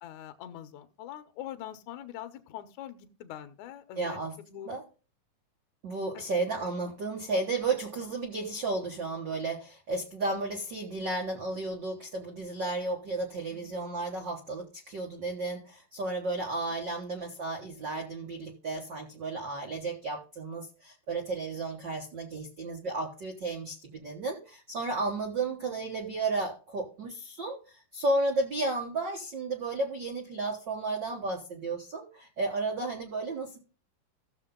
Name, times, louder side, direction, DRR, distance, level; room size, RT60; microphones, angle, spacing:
voice 1, 0.0-4.2 4.5-4.7 6.1-6.4 13.5-14.1, left 11 dB, 70° left, 9 dB, 2.0 m, -44 dB
voice 2, 4.0-4.3 4.6-4.8 5.8-33.6, right 3 dB, 85° right, 2 dB, 0.9 m, -33 dB
14.5 x 6.9 x 3.8 m, 0.35 s
omnidirectional pair, 4.3 m